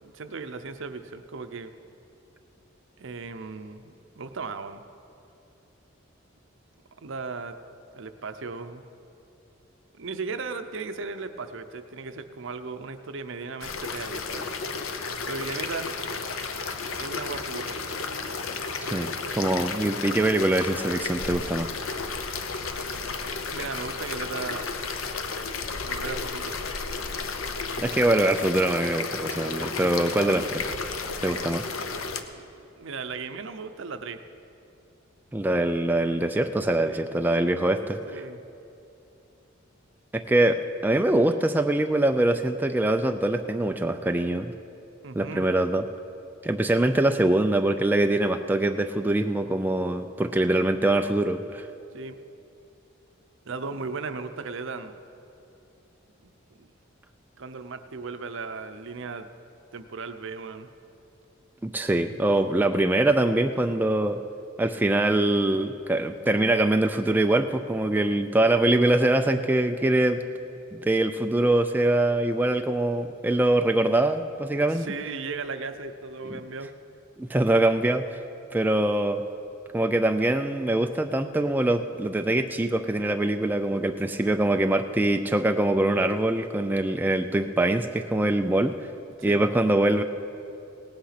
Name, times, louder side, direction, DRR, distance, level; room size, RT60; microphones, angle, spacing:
voice 1, 0.0-1.7 3.0-4.8 7.0-7.6 7.9-8.8 9.9-14.4 15.2-15.9 17.0-17.9 23.1-24.7 25.8-26.7 31.9-34.2 36.8-37.3 38.1-38.4 45.0-45.5 51.9-52.2 53.4-54.9 56.6-56.7 57.4-59.3 59.7-60.7 74.5-76.7 89.2-89.4, right 4 dB, 65° right, 9 dB, 0.7 m, -36 dB
sound 1, 13.6-32.2, left 4 dB, 85° left, 0.8 m, -33 dB
voice 2, 18.9-21.7 27.8-30.6 31.2-31.6 35.3-38.2 40.1-44.5 45.2-45.9 46.4-51.7 61.6-64.2 64.6-70.2 70.7-74.8 77.2-78.2 78.5-79.2 79.7-88.9 89.2-90.0, right 1 dB, 10° right, 6 dB, 0.3 m, -23 dB
17.5 x 8.8 x 5.8 m, 2.7 s
head